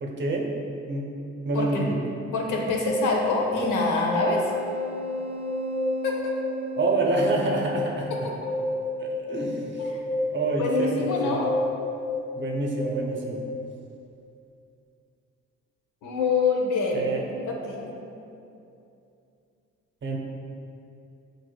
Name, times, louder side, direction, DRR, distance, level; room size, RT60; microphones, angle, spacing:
voice 1, 0.0-0.5 0.9-1.1 1.4-1.9 6.8-8.3 9.0-9.8 10.3-10.9 11.2-11.4 12.4-13.4 16.9-17.2 20.0-20.2, right 3 dB, 40° right, 0 dB, 0.6 m, -27 dB
voice 2, 1.5-1.9 2.3-4.4 6.0-6.4 9.8-9.9 10.6-11.5 16.0-18.0, left 3 dB, 85° left, -1 dB, 0.7 m, -26 dB
sound 1, 2.9-13.0, left 1 dB, 10° left, 1.3 m, -30 dB
6.0 x 2.6 x 2.2 m, 2.6 s
cardioid pair, 90°, 30 cm